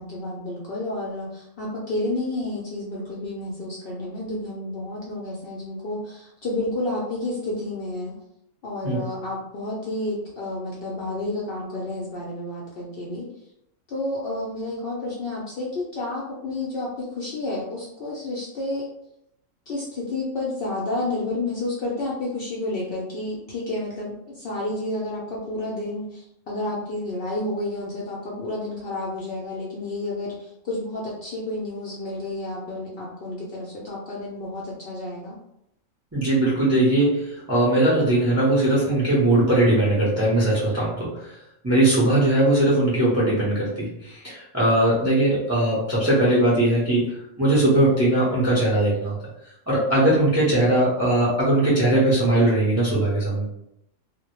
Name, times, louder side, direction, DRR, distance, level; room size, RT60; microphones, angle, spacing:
voice 1, 0.0-8.1 8.6-13.3 13.9-18.9 19.7-35.4, left 2 dB, 65° left, -4 dB, 0.6 m, -30 dB
voice 2, 36.1-41.3 41.6-49.1 49.7-53.5, right 1 dB, 20° right, -7 dB, 0.4 m, -20 dB
2.1 x 2.0 x 2.9 m, 0.79 s
omnidirectional pair, 1.4 m